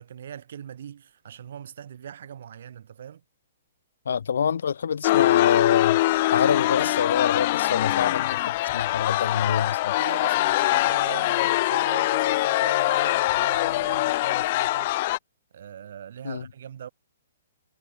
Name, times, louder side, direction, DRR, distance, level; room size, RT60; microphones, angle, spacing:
voice 1, 0.0-3.2 10.0-14.9 15.5-16.9, right 9 dB, 65° right, 6.4 m, -40 dB
voice 2, 4.0-10.0 16.2-16.5, left 7 dB, 85° left, 1.2 m, -26 dB
sound 1, 5.0-15.2, left 17 dB, 40° left, 0.9 m, -23 dB
hypercardioid pair, 160°, 0 cm